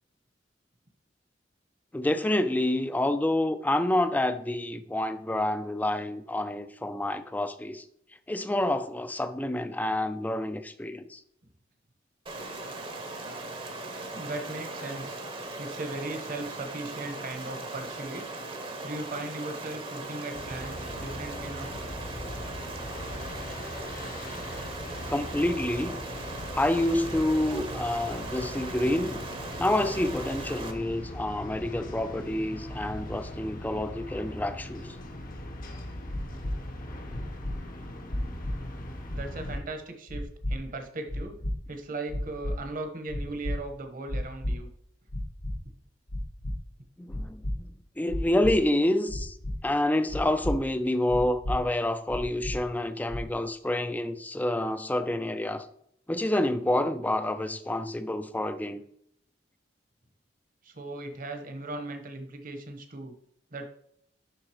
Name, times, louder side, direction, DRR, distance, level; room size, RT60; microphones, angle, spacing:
voice 1, 1.9-7.8 8.3-11.2 25.1-26.0 26.5-29.2 29.6-34.9 47.0-49.4 49.6-55.7 56.1-58.8, left 1 dB, 10° left, 0.4 m, -28 dB
Stream, 12.3-30.7, right 2 dB, 30° right, 0.9 m, -39 dB
voice 2, 14.1-15.2 15.6-18.3 18.8-21.8 39.1-41.4 41.7-44.7 60.6-63.1 63.5-63.6, right 2 dB, 50° right, 1.1 m, -38 dB
sound 1, 20.3-39.6, left 1 dB, 50° left, 0.9 m, -40 dB
sound 2, 36.1-36.5 37.1-37.5 38.1-38.5 39.1-39.6 40.1-40.5 41.1-41.5 42.1-42.5 43.1-43.5 44.1-44.5 45.1-45.5 46.1-46.5 47.1-47.5 48.1-48.5 49.1-49.5 50.1-50.5 51.1-51.5 52.1-52.5 53.1-53.4, left 1 dB, 80° left, 1.3 m, -32 dB
11.5 x 3.9 x 3.0 m
head